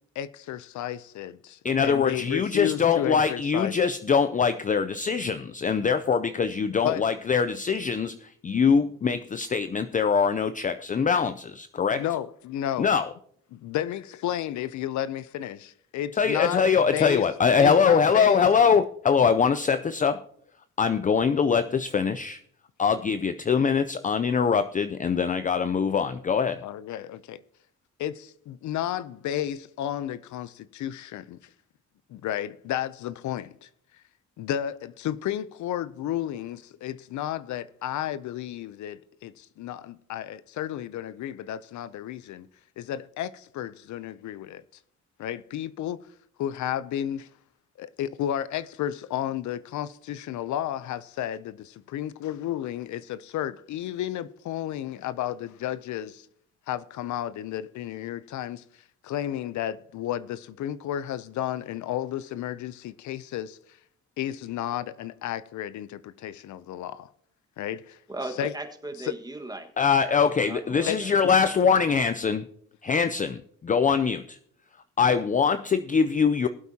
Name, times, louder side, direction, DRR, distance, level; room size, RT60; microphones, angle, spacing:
voice 1, 0.2-3.7 6.8-7.0 11.9-12.9 13.5-16.6 16.9-17.2 17.6-18.5 26.6-27.4 28.0-31.4 32.1-33.7 34.4-42.5 42.8-44.6 45.2-46.0 46.4-47.3 47.8-56.3 56.7-58.6 59.0-63.8 64.2-67.1 67.6-68.0 68.4-68.5 69.0-69.1 70.9-71.0, left 11 dB, 75° left, 0.6 m, -32 dB
voice 2, 1.6-12.0 12.8-13.1 16.1-20.2 20.8-22.4 22.8-26.6 69.8-72.5 72.8-74.4 75.0-76.5, left 6 dB, 25° left, 0.5 m, -23 dB
voice 3, 68.1-69.7 70.4-71.1, right 2 dB, 15° right, 1.5 m, -37 dB
19.5 x 8.2 x 2.8 m
cardioid pair, 90°, 30 cm